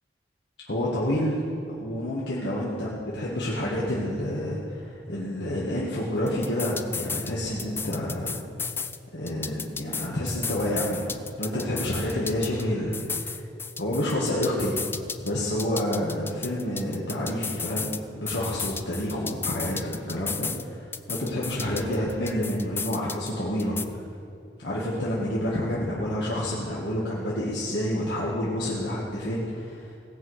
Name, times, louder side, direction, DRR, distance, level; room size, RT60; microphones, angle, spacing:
voice 1, 0.7-1.4 1.7-8.4 9.1-13.4 13.8-14.8 15.2-23.8 24.6-30.0, left 1 dB, 70° left, -6 dB, 1.7 m, -29 dB
sound 1, 6.3-7.3 7.6-9.0 9.3-12.6 12.9-15.3 15.6-18.0 18.3-20.6 20.9-23.3 23.6-23.8, left 5 dB, 15° left, 0.4 m, -33 dB
17.5 x 6.0 x 8.0 m, 2.5 s
head